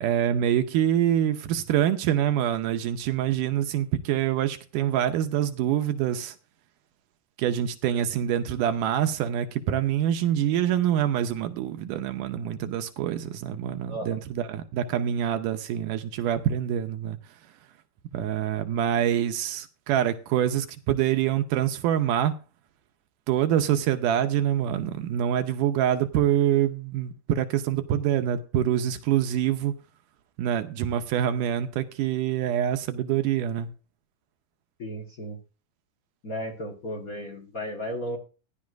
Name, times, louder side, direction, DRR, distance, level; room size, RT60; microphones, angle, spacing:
voice 1, 0.0-6.4 7.4-17.2 18.1-22.3 23.3-29.7 30.4-33.7, right 10 dB, 80° right, 2.3 m, -25 dB
voice 2, 34.8-35.4 36.2-38.2, equal, 50° left, 1.1 m, -34 dB
16.0 x 10.5 x 2.5 m
omnidirectional pair, 3.8 m